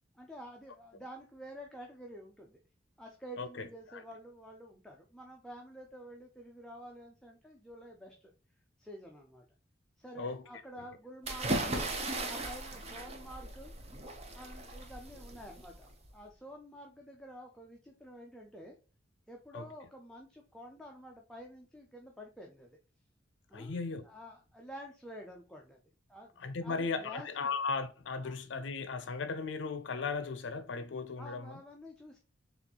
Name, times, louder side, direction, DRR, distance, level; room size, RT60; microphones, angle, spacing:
voice 1, 0.1-2.6 3.0-8.3 8.8-9.4 10.0-11.7 12.2-13.7 14.3-18.7 19.3-22.8 23.5-23.8 24.0-25.8 26.1-27.5 28.2-28.3 31.2-32.2, equal, 5° left, 0.5 m, -49 dB
voice 2, 3.4-4.0 10.2-10.4 19.5-19.7 23.5-24.0 26.4-31.6, left 4 dB, 70° left, 0.5 m, -37 dB
sound 1, 11.2-16.1, right 2 dB, 35° right, 0.7 m, -37 dB
4.2 x 3.4 x 2.8 m
head